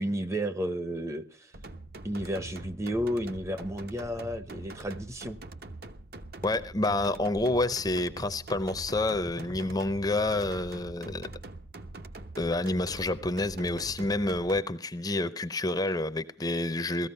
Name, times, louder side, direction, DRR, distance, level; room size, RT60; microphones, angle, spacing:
voice 1, 0.0-1.5 2.0-5.4, equal, 15° right, 0.7 m, -32 dB
sound 1, 1.5-14.6, right 2 dB, 55° right, 1.0 m, -44 dB
voice 2, 6.4-11.3 12.4-17.1, left 2 dB, 20° left, 0.6 m, -28 dB
17.5 x 14.0 x 5.5 m
head